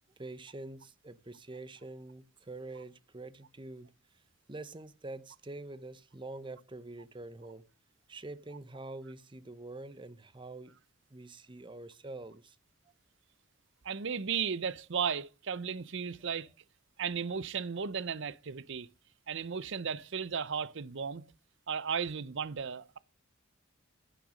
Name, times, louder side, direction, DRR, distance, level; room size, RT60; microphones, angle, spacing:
voice 1, 0.2-3.9 4.5-7.7 8.1-10.7 11.1-12.6, right 2 dB, 25° right, 0.8 m, -45 dB
voice 2, 13.8-16.5 17.0-18.9 19.3-21.2 21.7-23.0, right 6 dB, 65° right, 0.7 m, -35 dB
10.5 x 9.1 x 5.0 m
head